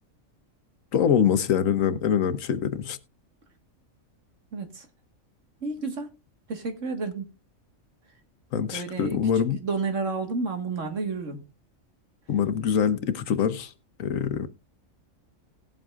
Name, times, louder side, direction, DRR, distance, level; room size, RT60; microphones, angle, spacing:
voice 1, 0.9-3.0 8.5-9.6 12.3-13.7 14.0-14.5, left 8 dB, 80° left, 1.3 m, -24 dB
voice 2, 4.5-4.9 5.6-6.1 6.5-7.3 8.7-11.4, right 4 dB, 70° right, 2.0 m, -31 dB
18.5 x 7.7 x 2.4 m
omnidirectional pair, 1.4 m